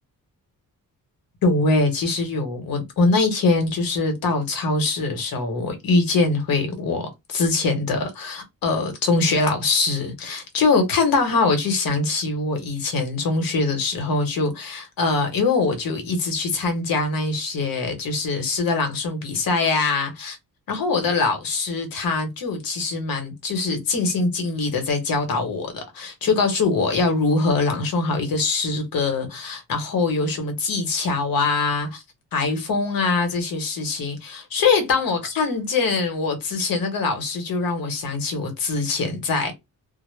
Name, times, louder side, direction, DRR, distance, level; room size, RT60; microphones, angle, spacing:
voice 1, 1.4-20.4 20.7-32.0 32.3-39.5, left 3 dB, 70° left, 1.0 m, -23 dB
2.0 x 2.0 x 3.1 m
wide cardioid pair, 145°, 35 cm